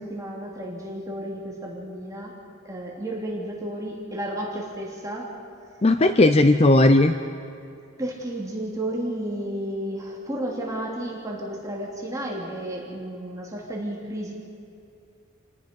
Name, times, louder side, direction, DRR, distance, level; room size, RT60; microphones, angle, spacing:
voice 1, 0.0-2.3 2.6-5.4 8.0-14.3, right 1 dB, 15° right, -3 dB, 3.0 m, -32 dB
voice 2, 5.8-7.1, left 2 dB, 30° left, 8 dB, 0.6 m, -16 dB
28.5 x 19.0 x 5.4 m, 2.6 s
head